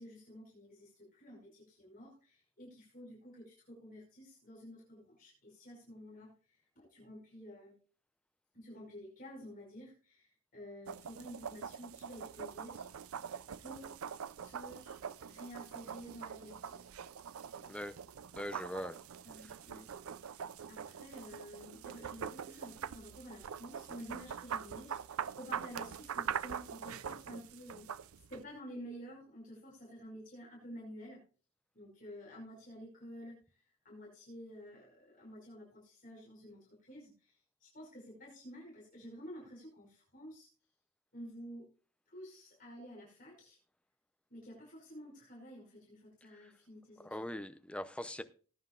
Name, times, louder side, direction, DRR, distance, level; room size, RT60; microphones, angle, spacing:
voice 1, 0.0-7.8 8.5-12.9 13.6-13.9 14.4-15.0 15.3-16.9 17.4-17.7 19.2-19.9 20.7-31.2 31.7-40.5 41.1-41.7 42.1-43.6 44.3-47.2, equal, 40° left, 5.4 m, -51 dB
sound 1, 10.9-28.4, right 7 dB, 85° right, 0.5 m, -44 dB
voice 2, 18.3-19.0 19.4-19.5 47.0-48.2, left 1 dB, 5° left, 0.6 m, -41 dB
19.0 x 9.6 x 2.5 m
head